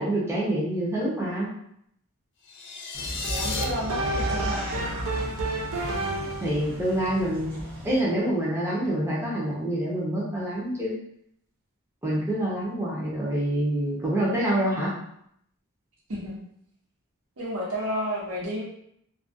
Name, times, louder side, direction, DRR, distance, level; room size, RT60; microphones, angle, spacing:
voice 1, 0.0-1.5 6.4-10.9 12.0-14.9, right 1 dB, 10° right, -6 dB, 0.5 m, -26 dB
sound 1, 2.4-3.6, left 4 dB, 55° left, 0.3 m, -33 dB
sound 2, 2.9-8.0, equal, 40° right, 0.8 m, -35 dB
sound 3, 3.2-6.6, right 2 dB, 70° right, 0.4 m, -31 dB
voice 2, 3.2-4.9 16.1-16.3 17.4-18.6, equal, 85° right, -5 dB, 0.9 m, -31 dB
2.3 x 2.2 x 2.6 m, 0.72 s
head